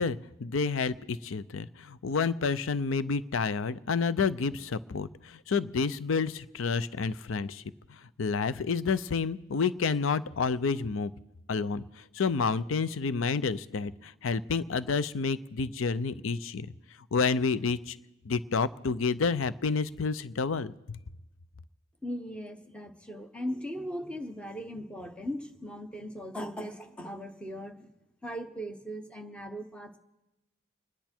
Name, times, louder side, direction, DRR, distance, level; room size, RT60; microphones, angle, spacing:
voice 1, 0.0-7.6 8.2-11.1 11.5-11.8 12.1-16.7 17.1-18.0 18.3-21.0, left 5 dB, 75° left, 16 dB, 0.5 m, -29 dB
voice 2, 22.0-27.9 28.2-30.0, equal, 5° left, 5 dB, 1.0 m, -38 dB
28.0 x 10.5 x 4.4 m, 1.0 s
head